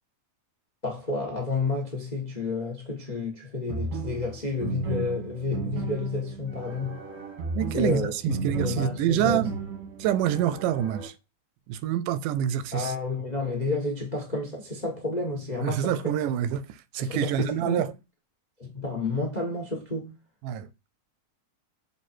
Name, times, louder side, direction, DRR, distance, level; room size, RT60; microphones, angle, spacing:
voice 1, 0.8-7.0 7.7-9.4 12.7-16.1 17.0-17.8 18.6-20.1, left 3 dB, 60° left, 0.4 m, -30 dB
sound 1, 3.7-11.1, right 4 dB, 75° right, 3.4 m, -35 dB
voice 2, 7.6-9.5 10.0-11.1 11.7-12.9 15.6-17.9 20.4-20.7, right 10 dB, 90° right, 2.2 m, -26 dB
7.3 x 3.2 x 4.4 m
omnidirectional pair, 3.6 m